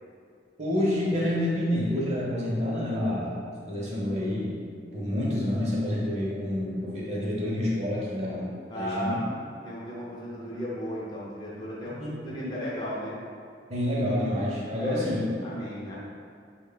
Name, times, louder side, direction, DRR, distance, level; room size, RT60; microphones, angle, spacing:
voice 1, 0.6-3.4 3.7-4.6 4.9-8.5 8.7-9.2 12.0-12.1 13.7-15.2, left 1 dB, 35° right, -5 dB, 0.6 m, -28 dB
voice 2, 8.7-9.2 9.6-13.2 14.8-16.0, equal, 25° left, -7 dB, 0.5 m, -35 dB
3.6 x 2.1 x 3.8 m, 2.3 s
head